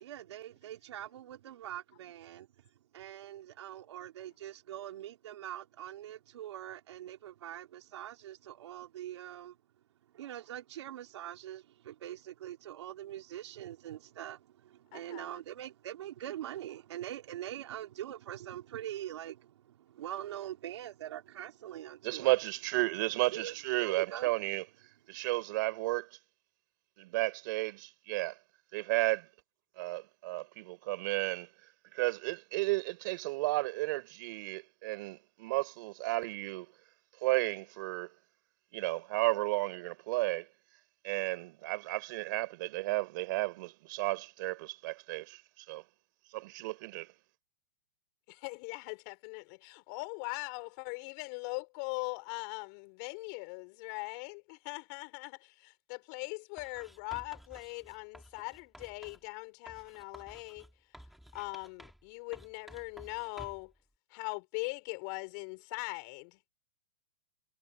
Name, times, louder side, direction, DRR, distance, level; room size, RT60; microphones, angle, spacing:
voice 1, 0.0-2.5 2.9-9.6 10.1-22.3 23.3-23.5 23.8-24.3, right 12 dB, 60° right, 3.7 m, -43 dB
voice 2, 14.9-15.4 48.3-60.7 61.3-63.7 64.1-66.5, left 33 dB, 35° left, 5.8 m, -41 dB
voice 3, 22.0-24.6 25.1-26.2 27.0-28.4 28.7-29.3 29.8-31.5 31.9-36.7 37.2-38.1 38.7-40.5 41.0-45.8 46.3-47.1, right 21 dB, 40° right, 4.8 m, -33 dB
Writing, 56.6-59.3 59.7-62.1 62.3-63.7, equal, ahead, 6.0 m, -53 dB
hypercardioid pair, 165°, 16 cm